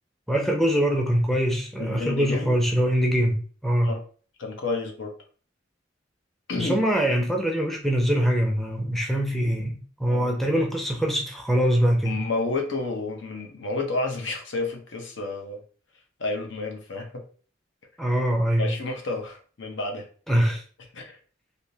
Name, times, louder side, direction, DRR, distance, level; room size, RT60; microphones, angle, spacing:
voice 1, 0.3-3.9 6.5-12.2 18.0-18.7 20.3-20.6, equal, ahead, 0 dB, 0.5 m, -23 dB
voice 2, 1.8-2.5 3.8-4.0 4.4-5.1 6.5-6.8 10.1-10.3 12.1-15.6 16.2-17.2 18.6-20.1 20.9-21.2, left 3 dB, 75° left, 2 dB, 0.8 m, -30 dB
3.5 x 2.6 x 2.7 m, 0.41 s
head